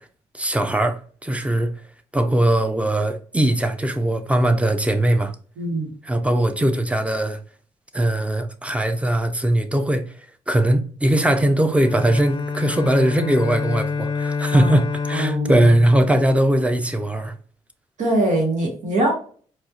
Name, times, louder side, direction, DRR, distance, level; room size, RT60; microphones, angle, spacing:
voice 1, 0.3-1.7 2.1-5.3 6.0-7.4 7.9-10.1 10.5-17.3, right 1 dB, 10° right, 0.5 m, -20 dB
voice 2, 5.6-5.9 14.5-14.8 15.1-15.6 18.0-19.1, right 1 dB, 85° right, 1.3 m, -22 dB
Bowed string instrument, 11.7-17.0, left 5 dB, 40° left, 0.5 m, -27 dB
4.2 x 2.4 x 2.4 m
cardioid pair, 85°, 12 cm